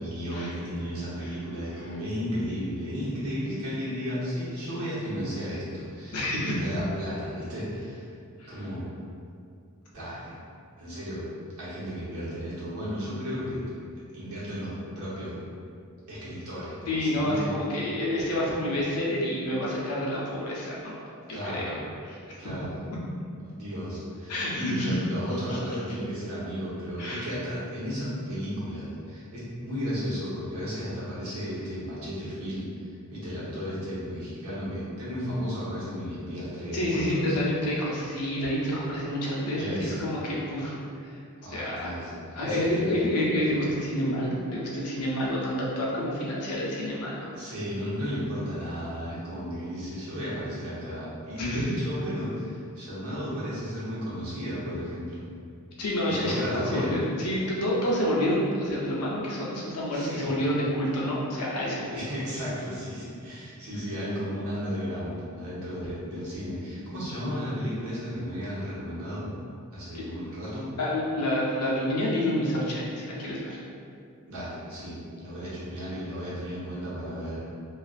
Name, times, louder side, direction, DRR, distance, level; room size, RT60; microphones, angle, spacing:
voice 1, 0.0-8.1 8.5-8.8 9.9-10.3 10.8-11.2 11.6-13.6 14.1-15.3 16.1-17.5 21.2-21.8 22.4-22.8 23.5-32.6 33.1-37.3 39.6-40.0 41.4-42.1 42.4-43.0 47.3-55.2 56.0-57.0 59.9-60.3 61.9-69.3 69.7-70.7 74.3-77.4, equal, 75° right, -9 dB, 0.9 m, -34 dB
voice 2, 6.1-6.5 8.4-8.5 16.9-21.0 21.4-21.8 22.0-22.2 24.3-25.0 25.5-25.6 27.0-27.2 36.7-41.1 41.5-41.9 42.4-47.3 51.4-51.7 55.8-62.0 69.9-70.0 70.8-73.6, left 1 dB, 85° left, -5 dB, 0.6 m, -28 dB
2.4 x 2.3 x 2.4 m, 2.4 s
head